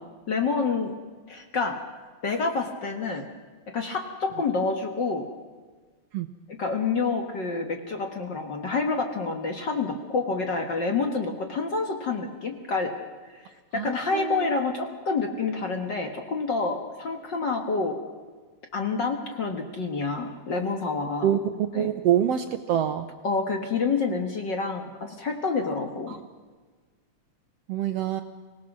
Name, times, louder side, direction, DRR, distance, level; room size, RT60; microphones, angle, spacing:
voice 1, 0.3-0.9 1.3-1.8 2.2-3.3 3.7-5.3 6.5-12.9 13.2-18.0 18.7-21.3 21.7-21.9 23.2-26.2, left 4 dB, 45° left, 4 dB, 1.7 m, -28 dB
voice 2, 13.7-14.5 21.2-23.1 26.1-26.2 27.7-28.2, right 10 dB, 70° right, 8 dB, 1.6 m, -26 dB
25.0 x 17.5 x 6.1 m, 1.4 s
omnidirectional pair, 3.5 m